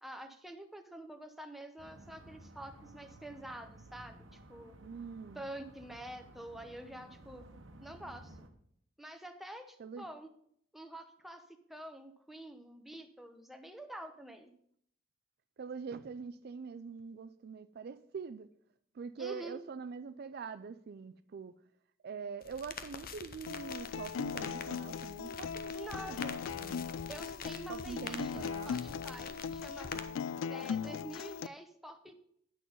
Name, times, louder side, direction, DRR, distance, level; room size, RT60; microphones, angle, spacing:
voice 1, 0.0-4.8 5.3-7.4 7.8-8.5 9.0-10.3 10.7-11.4 11.7-14.5 19.2-19.6 25.7-26.2 27.1-29.9 30.5-32.1, right 1 dB, ahead, 0.8 m, -47 dB
sound 1, 1.8-8.5, right 1 dB, 85° right, 1.0 m, -55 dB
voice 2, 4.8-5.5 9.8-10.1 15.6-18.5 18.9-21.6 22.0-26.9 27.7-28.8, right 5 dB, 55° right, 0.4 m, -44 dB
sound 2, 22.4-30.0, left 6 dB, 50° left, 0.7 m, -46 dB
Acoustic guitar, 23.5-31.5, left 6 dB, 80° left, 0.3 m, -39 dB
9.3 x 6.2 x 5.4 m
head